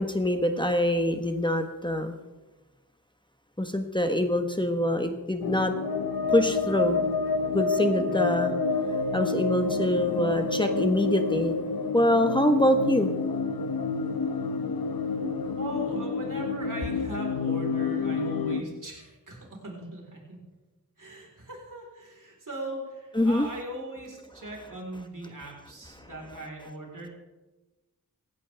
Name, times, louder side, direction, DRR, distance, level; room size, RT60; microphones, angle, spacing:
voice 1, 0.0-2.2 3.6-5.7 6.3-7.0 7.5-8.5 9.1-11.5 11.9-13.1 23.1-23.4 26.0-26.1, left 1 dB, 15° left, 5 dB, 1.3 m, -25 dB
sound 1, 5.4-18.6, left 4 dB, 85° left, 0.9 m, -28 dB
voice 2, 8.0-8.3 15.5-20.4 21.0-27.1, right 1 dB, 60° right, 0 dB, 4.3 m, -39 dB
17.5 x 15.5 x 3.5 m, 1.1 s
wide cardioid pair, 55°, 35 cm